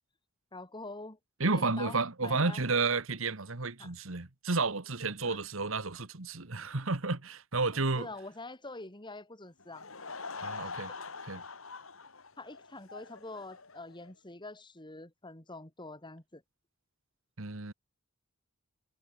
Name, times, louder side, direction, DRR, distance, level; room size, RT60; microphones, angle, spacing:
voice 1, 0.5-1.2 1.5-2.6 3.8-3.9 5.2-5.4 7.7-9.9 12.4-16.4, left 2 dB, 20° left, 2.8 m, -45 dB
voice 2, 1.4-8.1 10.4-10.9 11.3-11.4 17.4-17.7, right 3 dB, 70° right, 1.7 m, -31 dB
Laughter / Crowd, 9.6-14.1, left 4 dB, 70° left, 3.4 m, -44 dB
head